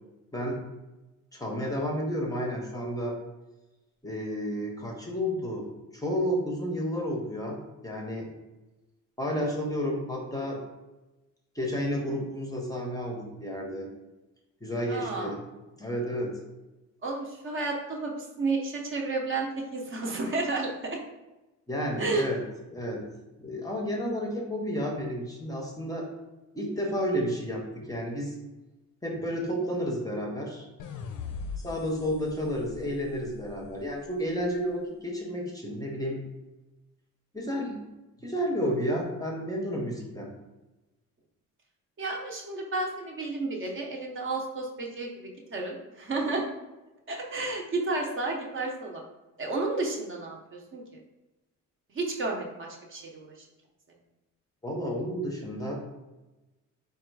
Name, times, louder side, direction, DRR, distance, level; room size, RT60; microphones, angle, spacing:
voice 1, 1.3-3.1 4.0-5.6 5.9-8.3 9.2-10.6 11.5-13.9 14.6-15.4 15.8-16.3 21.7-22.4 22.7-23.0 23.4-26.0 26.5-28.4 29.0-30.6 31.6-36.2 37.3-37.8 38.2-40.3 54.6-55.7, equal, 10° left, 0 dB, 0.6 m, -31 dB
voice 2, 14.9-15.3 17.0-21.0 22.0-22.3 42.0-46.5 47.1-49.0 49.4-50.8 51.9-53.4, right 3 dB, 40° right, 0 dB, 0.7 m, -32 dB
sound 1, 30.8-34.0, left 5 dB, 90° left, 0.5 m, -41 dB
4.3 x 2.3 x 4.5 m, 1.1 s
cardioid pair, 140°, 31 cm